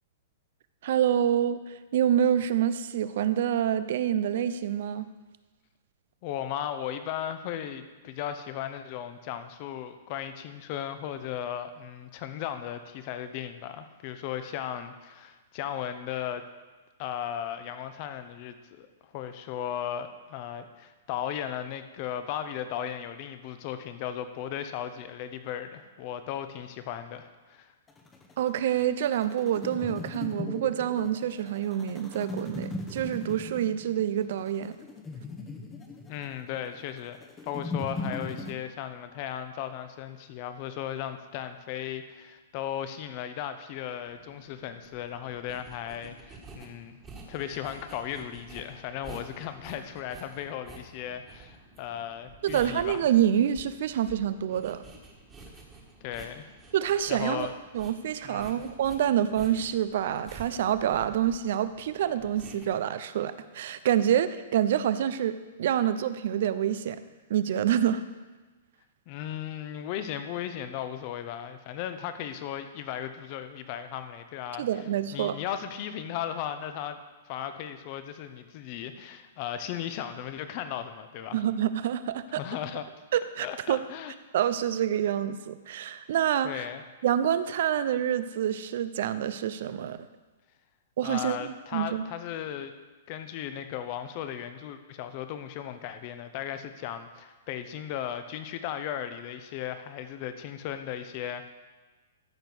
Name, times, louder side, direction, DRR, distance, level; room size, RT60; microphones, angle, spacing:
voice 1, 0.8-5.1 28.4-34.8 52.4-54.8 56.7-57.5 57.7-67.0 67.3-68.0 74.6-75.4 81.3-82.4 83.1-83.8 84.3-86.6 87.0-90.0 91.0-92.0, right 10 dB, 60° right, 13 dB, 0.6 m, -27 dB
voice 2, 6.2-16.4 17.0-27.7 36.1-37.2 37.4-47.0 47.3-53.0 56.0-56.5 57.1-57.5 58.2-58.6 69.1-74.7 75.1-77.0 77.3-81.4 82.3-82.9 83.4-84.1 86.4-86.8 91.0-92.7 93.1-101.5, left 10 dB, 40° left, 9 dB, 0.9 m, -36 dB
sound 1, 27.9-38.5, left 2 dB, 15° left, 1.0 m, -39 dB
sound 2, 44.0-62.7, right 3 dB, 15° right, 1.7 m, -50 dB
13.5 x 5.3 x 6.1 m, 1.2 s
hypercardioid pair, 145°, 0 cm